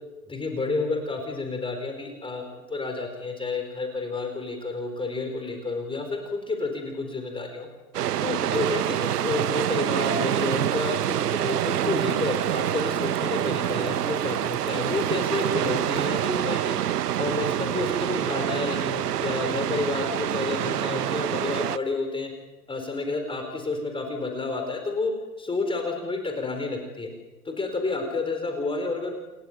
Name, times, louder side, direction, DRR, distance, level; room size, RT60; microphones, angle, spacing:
voice 1, 0.3-7.7 8.2-16.8 17.2-22.3 22.7-25.1 25.4-27.1 27.4-29.1, left 3 dB, 10° left, 4 dB, 4.4 m, -30 dB
sound 1, 7.9-21.8, right 11 dB, 80° right, 1.0 m, -26 dB
sound 2, 8.5-16.1, right 6 dB, 65° right, 6.9 m, -50 dB
29.0 x 15.0 x 9.3 m, 1.1 s
hypercardioid pair, 120°, 46 cm